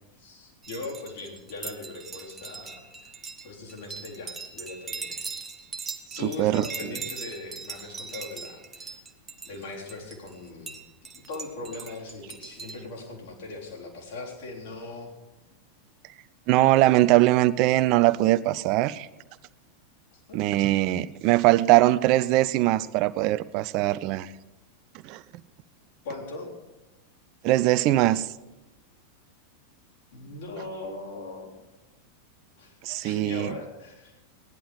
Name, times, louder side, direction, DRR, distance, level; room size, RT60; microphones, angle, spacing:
voice 1, 0.1-5.3 6.2-9.0 9.5-10.8 11.2-15.1 20.1-20.4 26.0-26.5 30.1-31.5 32.6-34.2, left 3 dB, 55° left, -2 dB, 3.8 m, -40 dB
sound 1, 0.6-12.8, right 5 dB, 20° right, 1.2 m, -40 dB
voice 2, 6.1-6.6 16.5-19.1 20.3-24.3 25.0-25.2 27.4-28.3 32.8-33.5, right 16 dB, 40° right, 17 dB, 0.5 m, -21 dB
17.5 x 11.0 x 5.3 m, 1.0 s
figure-of-eight pair, 90°, 0 cm